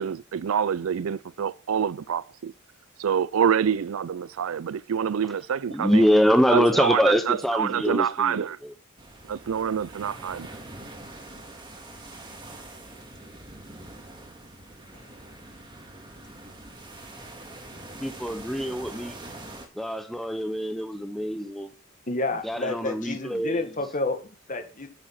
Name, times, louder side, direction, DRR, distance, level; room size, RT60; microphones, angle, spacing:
voice 1, 0.0-2.5 3.0-6.1 6.5-8.6 9.3-10.6, right 8 dB, 75° right, 0.4 m, -26 dB
voice 2, 5.7-8.7 18.0-19.1 19.7-21.7 22.4-23.7, equal, ahead, 0.7 m, -24 dB
sound 1, 9.0-19.7, right 2 dB, 20° right, 2.0 m, -44 dB
voice 3, 22.1-24.9, left 2 dB, 40° left, 1.7 m, -30 dB
8.7 x 7.4 x 5.8 m
head